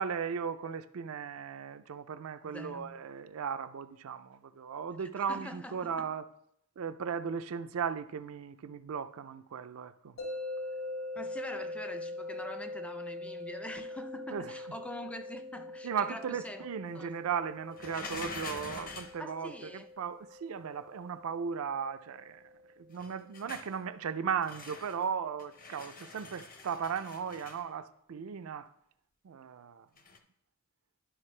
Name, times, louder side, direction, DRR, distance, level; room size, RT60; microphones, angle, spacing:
voice 1, 0.0-6.3 6.8-10.1 14.3-14.8 15.8-22.4 22.9-28.7 29.2-29.9, right 7 dB, 75° right, 0.4 m, -36 dB
voice 2, 2.4-3.0 5.0-6.1 11.1-16.7 16.9-17.2 19.2-19.9, left 1 dB, 5° left, 0.4 m, -44 dB
sound 1, 10.2-23.2, left 2 dB, 75° left, 2.1 m, -43 dB
sound 2, 17.8-19.2 22.9-23.8 24.4-25.0 25.4-27.6 30.0-30.2, left 4 dB, 40° left, 0.7 m, -45 dB
11.5 x 4.9 x 3.2 m
head